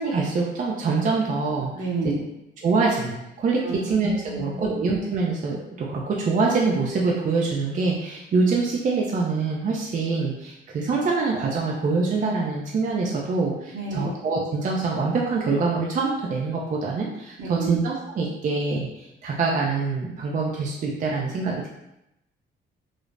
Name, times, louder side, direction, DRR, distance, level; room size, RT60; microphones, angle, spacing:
voice 1, 0.0-1.9 2.6-21.7, right 4 dB, 40° right, -2 dB, 0.4 m, -25 dB
voice 2, 1.7-2.2 3.6-3.8 4.2-4.6 13.7-14.1 17.4-17.7, right 3 dB, 70° right, -3 dB, 0.8 m, -30 dB
2.4 x 2.0 x 3.2 m, 0.87 s
cardioid pair, 90°, 20 cm